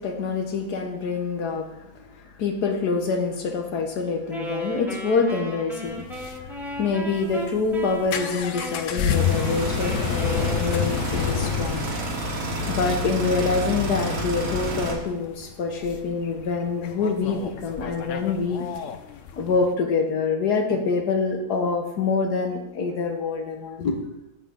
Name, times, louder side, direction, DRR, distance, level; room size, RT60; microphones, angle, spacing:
voice 1, 0.0-1.9 2.4-6.1 6.8-11.9 12.7-18.7 19.4-23.9, left 4 dB, 85° left, 4 dB, 1.7 m, -26 dB
Wind instrument woodwind instrument, 4.3-11.2, left 1 dB, ahead, 1.4 m, -35 dB
sound 1, 5.9-19.7, left 8 dB, 65° left, 0.9 m, -30 dB
sound 2, 9.2-14.9, right 1 dB, 75° right, 1.8 m, -30 dB
8.8 x 7.7 x 3.6 m, 0.92 s
omnidirectional pair, 1.7 m